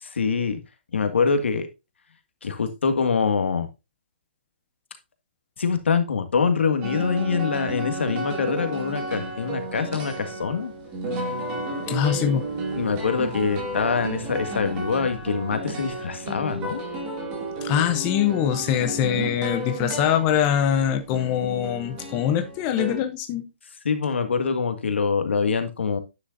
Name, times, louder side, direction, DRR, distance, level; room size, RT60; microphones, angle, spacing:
voice 1, 0.0-0.6 0.9-1.7 2.4-3.7 5.6-10.7 12.7-16.8 23.9-26.0, left 5 dB, 85° left, 1.8 m, -24 dB
sound 1, 6.8-23.0, right 2 dB, 15° right, 2.2 m, -32 dB
voice 2, 11.9-12.4 17.6-23.5, left 10 dB, 20° left, 0.7 m, -23 dB
9.7 x 6.7 x 2.6 m
hypercardioid pair, 170°, 6 cm